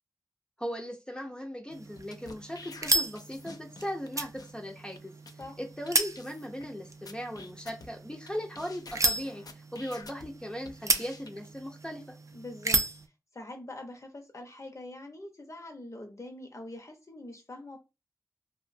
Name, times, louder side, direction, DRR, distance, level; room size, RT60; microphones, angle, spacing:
voice 1, 0.6-5.1 5.6-12.0, equal, 10° left, 1 dB, 0.5 m, -38 dB
sound 1, 1.7-13.1, right 2 dB, 50° right, 0.4 m, -34 dB
sound 2, 2.0-4.1 4.4-4.5 5.0-5.1 5.3-5.5 5.9-6.0 6.1-6.7 7.1-8.3 8.5-10.3 10.6-11.3, left 3 dB, 65° left, 0.4 m, -48 dB
voice 2, 12.3-12.8 13.3-17.8, left 1 dB, 45° left, 3 dB, 0.7 m, -44 dB
2.5 x 2.2 x 2.5 m, 0.26 s
cardioid pair, 45°, 7 cm